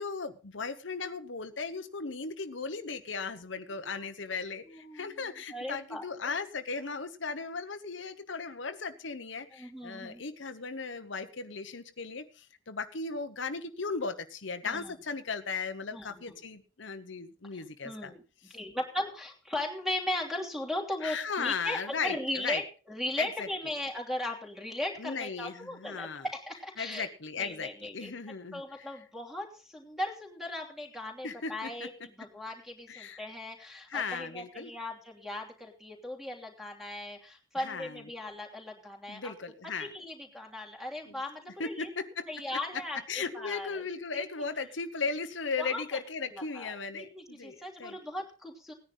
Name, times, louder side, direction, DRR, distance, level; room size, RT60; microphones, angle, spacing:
voice 1, 0.0-18.1 18.4-18.6 21.0-22.6 23.2-23.5 25.0-26.2 26.8-28.9 31.2-31.9 32.9-33.2 33.9-34.7 37.6-38.0 39.1-39.9 41.0-41.2 41.6-42.3 43.1-48.0, left 4 dB, 70° left, 9 dB, 1.1 m, -37 dB
voice 2, 4.6-5.2 5.5-6.0 9.5-10.2 14.6-14.9 15.9-16.2 17.5-18.2 18.5-27.1 27.4-28.1 28.5-39.3 39.8-41.9 42.3-43.0 43.3-43.8 44.1-44.2 45.6-45.8 46.3-48.7, left 1 dB, ahead, 2 dB, 3.0 m, -38 dB
18.0 x 10.0 x 4.0 m, 0.36 s
head